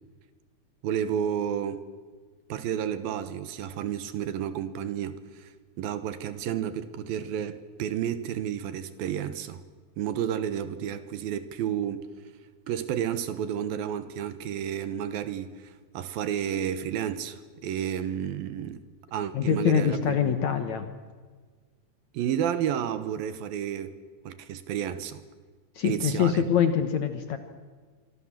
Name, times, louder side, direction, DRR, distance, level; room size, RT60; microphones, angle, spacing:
voice 1, 0.8-1.8 2.5-5.5 5.8-9.6 10.0-12.1 12.7-18.8 19.1-20.4 22.1-23.9 24.3-25.2 25.8-26.4, right 9 dB, 75° right, 2.8 m, -31 dB
voice 2, 19.3-20.9 25.8-27.4, left 8 dB, 60° left, 2.1 m, -24 dB
25.5 x 25.0 x 7.5 m
omnidirectional pair, 4.5 m